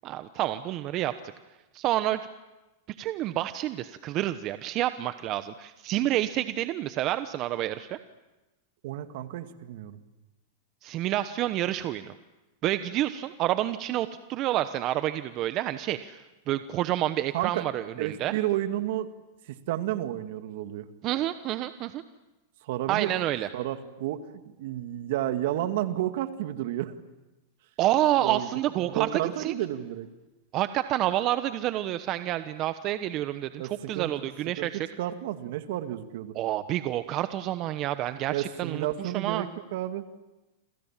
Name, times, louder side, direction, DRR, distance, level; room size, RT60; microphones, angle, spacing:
voice 1, 0.0-1.1 1.7-2.2 3.0-8.0 10.8-12.1 12.6-18.3 21.0-22.0 22.9-23.5 27.8-29.1 29.4-29.5 30.5-34.9 36.3-39.5, right 14 dB, 40° right, 11 dB, 1.1 m, -29 dB
voice 2, 8.8-10.0 17.3-17.6 18.0-19.1 19.5-20.9 22.6-23.1 23.5-24.2 24.6-27.0 28.2-28.5 28.8-30.1 33.6-34.1 34.6-36.3 38.3-40.0, right 13 dB, 65° right, 9 dB, 2.1 m, -31 dB
28.5 x 26.5 x 7.5 m, 1.1 s
hypercardioid pair, 120°, 0 cm